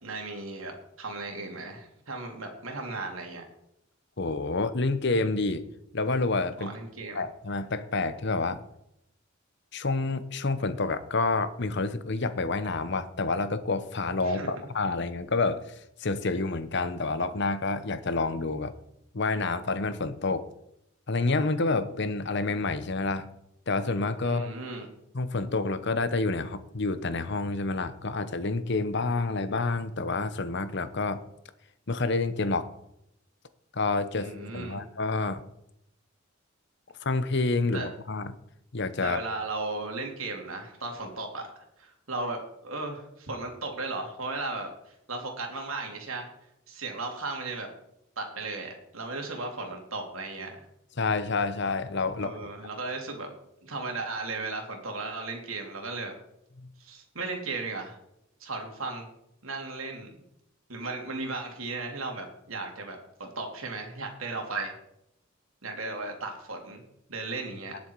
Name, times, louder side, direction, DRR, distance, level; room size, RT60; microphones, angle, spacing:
voice 1, 0.0-3.4 6.7-7.2 14.2-14.5 24.2-24.9 34.1-34.8 37.7-37.9 39.0-41.5 41.8-46.3 46.7-47.7 48.2-50.7 52.2-53.3 53.6-56.1 56.8-58.0 58.4-59.0 59.4-60.2 60.7-64.7 65.6-66.8 67.1-67.8, right 3 dB, 80° right, 2 dB, 3.1 m, -36 dB
voice 2, 4.2-5.6 5.9-6.7 7.1-8.6 9.7-15.6 16.0-18.7 19.1-20.5 21.1-23.3 23.7-24.5 25.1-31.2 31.9-32.7 33.7-35.4 37.0-38.3 38.7-39.2 51.0-52.3, left 3 dB, 55° left, 13 dB, 0.9 m, -28 dB
19.0 x 7.2 x 4.7 m, 0.79 s
head